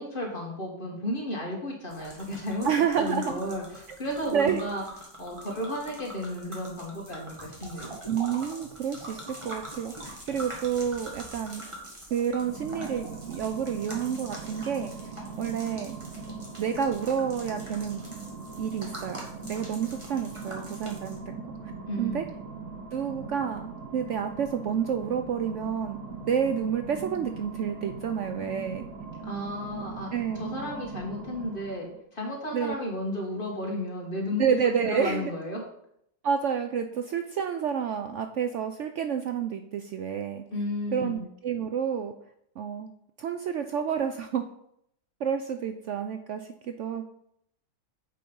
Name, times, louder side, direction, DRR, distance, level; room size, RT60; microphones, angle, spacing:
voice 1, 0.0-2.7 2.9-4.8 5.2-8.0 21.9-22.3 29.2-34.6 34.8-35.6 40.5-41.3, left 1 dB, 35° left, -1 dB, 2.1 m, -33 dB
sound 1, 1.9-21.2, right 1 dB, 20° right, 1.6 m, -44 dB
voice 2, 2.6-3.4 4.3-4.6 8.1-11.6 12.1-14.9 15.4-16.0 16.6-18.0 18.6-21.2 22.0-22.2 22.9-26.0 26.3-28.9 30.1-30.5 32.5-32.7 34.4-35.3 36.2-40.4 40.9-42.1 42.6-42.9 43.2-44.4 45.2-47.1, right 7 dB, 65° right, 7 dB, 0.8 m, -29 dB
sound 2, 12.2-32.0, right 4 dB, 85° right, 1.6 m, -41 dB
7.7 x 5.2 x 5.4 m, 0.72 s
omnidirectional pair, 1.6 m